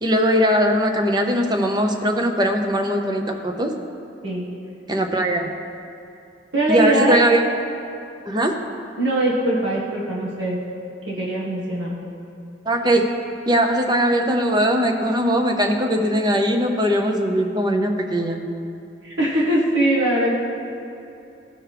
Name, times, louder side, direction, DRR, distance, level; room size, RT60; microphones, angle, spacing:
voice 1, 0.0-3.7 4.9-5.5 6.7-7.4 8.3-8.5 12.7-13.0 13.5-18.4, equal, 25° right, 4 dB, 0.7 m, -20 dB
voice 2, 6.5-7.2 9.0-10.6 11.1-11.9 19.0-20.4, right 1 dB, 80° right, -5 dB, 1.6 m, -21 dB
15.5 x 6.0 x 3.4 m, 2.7 s
head